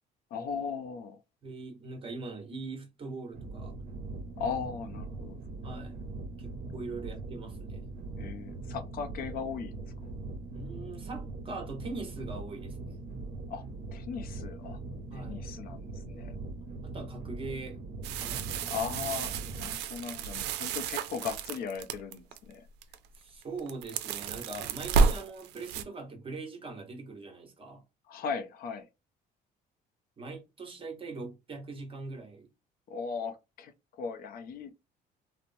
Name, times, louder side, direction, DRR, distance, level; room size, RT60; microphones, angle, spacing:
voice 1, 0.3-1.2 4.4-5.4 8.2-9.8 13.5-13.6 13.9-14.8 15.1-16.4 18.6-22.7 28.1-28.9 32.9-34.7, left 6 dB, 60° left, 0.5 m, -38 dB
voice 2, 1.4-3.8 5.6-6.0 6.4-7.8 10.5-13.0 15.1-15.4 16.8-17.8 18.1-18.5 19.4-19.6 23.2-27.8 30.2-32.5, right 3 dB, 30° right, 1.0 m, -42 dB
sound 1, 3.3-19.7, right 3 dB, 55° right, 0.7 m, -41 dB
sound 2, 18.0-22.4 22.8-23.2 23.4-25.8, right 5 dB, 85° right, 0.4 m, -31 dB
3.0 x 2.0 x 2.6 m
cardioid pair, 110°, 17 cm